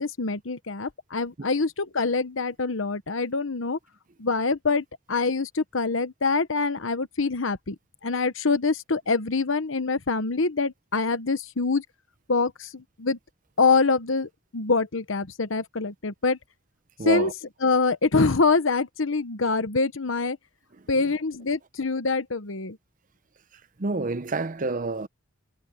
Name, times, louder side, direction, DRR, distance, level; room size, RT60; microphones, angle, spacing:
voice 1, 0.0-3.8 4.2-7.8 8.0-11.8 12.3-13.2 13.6-16.4 17.0-17.3 17.6-20.4 20.9-22.8, left 4 dB, 75° left, 1.1 m, -25 dB
voice 2, 17.0-17.3 23.8-25.1, right 3 dB, 40° right, 0.7 m, -28 dB
head